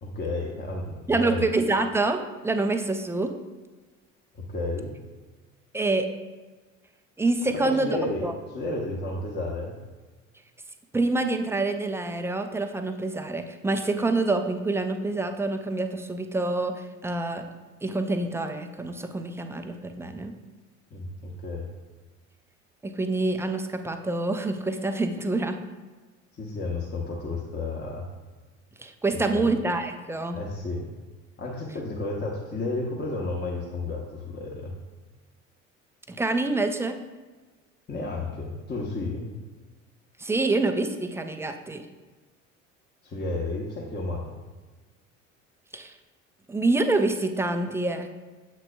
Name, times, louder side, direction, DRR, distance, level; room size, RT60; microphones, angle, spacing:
voice 1, 0.0-1.5 4.3-4.9 7.6-9.8 20.9-21.7 26.3-28.0 29.1-29.5 30.3-30.9 31.4-34.7 37.9-39.3 43.0-44.3, left 2 dB, 25° left, -2 dB, 1.0 m, -32 dB
voice 2, 1.1-3.3 5.7-6.1 7.2-7.9 8.2-8.3 10.9-17.4 17.8-20.3 22.8-25.6 28.8-30.4 36.1-37.0 40.2-41.8 45.7-45.9 46.5-48.1, right 2 dB, 5° right, 7 dB, 0.3 m, -26 dB
7.4 x 6.1 x 2.2 m, 1.3 s
figure-of-eight pair, 60°, 40 cm